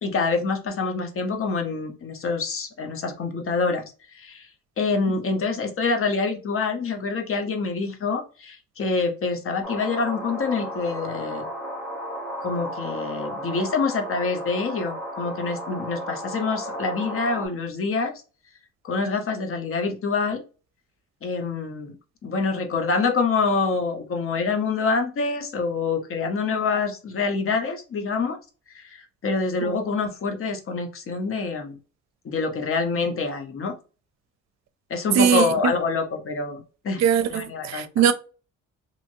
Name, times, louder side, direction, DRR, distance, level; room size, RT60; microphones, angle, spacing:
voice 1, 0.0-4.5 4.8-11.5 12.4-18.2 18.8-20.4 21.2-21.9 22.2-28.4 28.7-31.8 32.2-33.7 34.9-37.0 37.3-38.0, left 4 dB, 45° left, 0.8 m, -26 dB
sound 1, 9.6-17.5, equal, ahead, 1.6 m, -34 dB
voice 2, 35.2-35.7 37.0-38.1, right 8 dB, 60° right, 0.5 m, -21 dB
2.9 x 2.6 x 2.7 m
cardioid pair, 90°, 30 cm